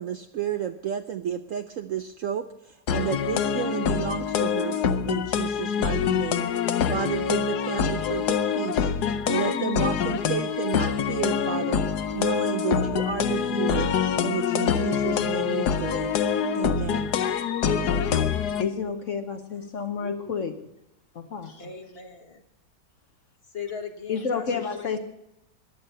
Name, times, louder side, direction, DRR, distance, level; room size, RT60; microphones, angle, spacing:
voice 1, 0.0-4.8 5.0-6.5 6.9-13.9 14.2-16.1 16.5-17.1, right 9 dB, 65° right, 8 dB, 0.8 m, -31 dB
sound 1, 2.9-18.6, left 7 dB, 70° left, 1.3 m, -25 dB
voice 2, 18.6-20.6 21.1-21.7 24.1-25.0, left 6 dB, 55° left, 7 dB, 1.1 m, -30 dB
voice 3, 20.0-20.3 21.6-22.4 23.5-25.0, left 6 dB, 35° left, 5 dB, 1.4 m, -39 dB
15.0 x 10.5 x 5.4 m, 0.82 s
omnidirectional pair, 1.9 m